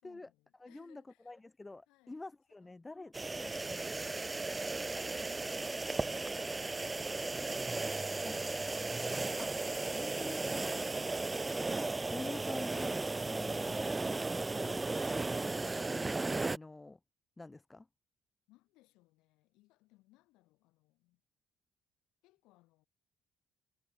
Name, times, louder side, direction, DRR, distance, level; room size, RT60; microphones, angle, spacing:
voice 1, 0.0-1.4 1.9-2.2 2.5-2.8 18.5-21.2 22.2-22.9, left 20 dB, 85° left, 1.9 m, -69 dB
voice 2, 0.6-3.9 8.2-8.4 9.4-10.9 11.6-13.0 13.3-14.0 14.5-15.0 15.4-17.0 17.4-17.9, left 2 dB, 20° left, 1.0 m, -48 dB
sound 1, 3.1-16.6, right 3 dB, 20° right, 0.3 m, -35 dB
supercardioid pair, 70°, 0 cm